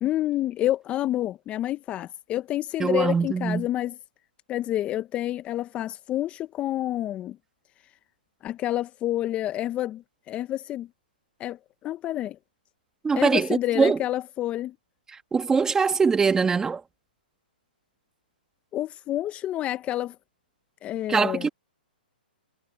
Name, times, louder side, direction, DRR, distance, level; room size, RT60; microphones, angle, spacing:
voice 1, 0.0-3.9 4.5-7.4 8.4-10.9 11.4-11.6 11.8-12.4 13.1-14.7 18.7-20.1 20.8-21.5, left 13 dB, 25° left, 1.0 m, -28 dB
voice 2, 2.8-3.7 13.0-14.0 15.3-16.8 21.1-21.5, right 5 dB, 10° right, 1.7 m, -22 dB
hypercardioid pair, 135°, 5 cm